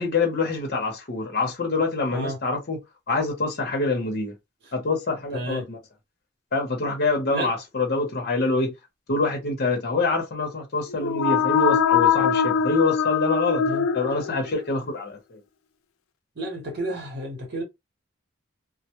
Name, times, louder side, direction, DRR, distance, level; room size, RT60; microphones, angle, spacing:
voice 1, 0.0-2.8 3.1-4.4 4.7-5.8 6.5-8.7 9.1-13.6 13.9-15.4, left 3 dB, 50° left, 0.8 m, -25 dB
voice 2, 5.3-5.6 7.3-7.5 13.6-13.9 16.4-17.6, right 1 dB, 55° right, 0.9 m, -31 dB
sound 1, 10.9-14.7, left 7 dB, 85° left, 0.3 m, -22 dB
2.1 x 2.0 x 2.9 m
head